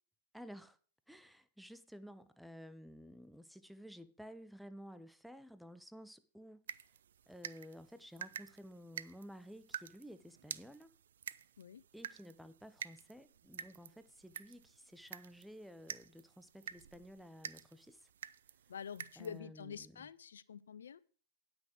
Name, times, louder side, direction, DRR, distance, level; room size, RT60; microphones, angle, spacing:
voice 1, 0.3-0.8 1.1-6.6 7.3-11.0 11.9-18.1 19.2-20.1, equal, ahead, 0.7 m, -53 dB
sound 1, 6.7-19.4, right 9 dB, 75° right, 0.4 m, -50 dB
voice 2, 18.7-21.0, left 7 dB, 80° left, 0.5 m, -47 dB
9.4 x 6.1 x 6.2 m
hypercardioid pair, 105°, 0 cm